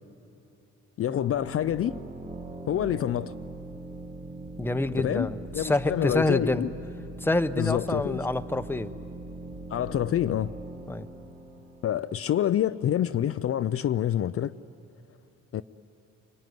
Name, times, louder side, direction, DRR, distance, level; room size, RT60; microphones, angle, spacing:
voice 1, 1.0-2.0 2.7-3.3 5.0-6.7 7.6-8.2 9.7-10.5 11.8-14.5 15.5-15.6, left 11 dB, 50° left, 0.5 m, -27 dB
sound 1, 1.1-12.6, right 2 dB, 25° right, 2.0 m, -41 dB
voice 2, 4.6-6.6 7.2-8.9 10.9-11.1, left 2 dB, 5° left, 0.8 m, -27 dB
25.0 x 24.0 x 9.4 m
cardioid pair, 90°, 30 cm